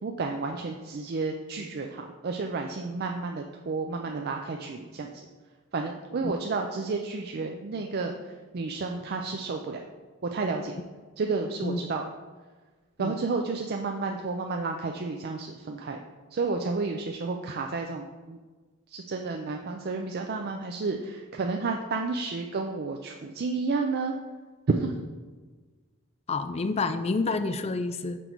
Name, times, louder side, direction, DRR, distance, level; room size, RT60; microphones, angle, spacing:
voice 1, 0.0-5.3 5.7-8.2 8.5-9.8 10.3-10.8 11.2-12.0 13.0-16.0 16.3-18.4 18.9-24.1 24.7-24.9, right 4 dB, 50° right, 3 dB, 0.4 m, -31 dB
voice 2, 26.3-28.2, left 3 dB, 30° left, 10 dB, 0.4 m, -28 dB
6.1 x 5.2 x 4.5 m, 1.3 s
head